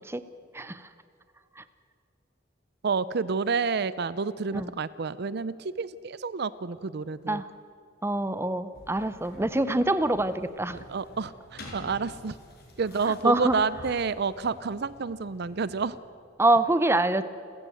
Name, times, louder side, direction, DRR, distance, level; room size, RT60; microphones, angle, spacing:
voice 1, 2.8-7.4 10.7-12.4 12.8-16.0, right 5 dB, 60° right, 17 dB, 0.5 m, -29 dB
voice 2, 8.0-10.8 13.2-13.5 16.4-17.2, right 2 dB, 15° right, 12 dB, 0.7 m, -25 dB
sound 1, 8.7-16.0, left 1 dB, 55° left, 5.7 m, -49 dB
29.5 x 14.5 x 7.8 m, 2.4 s
head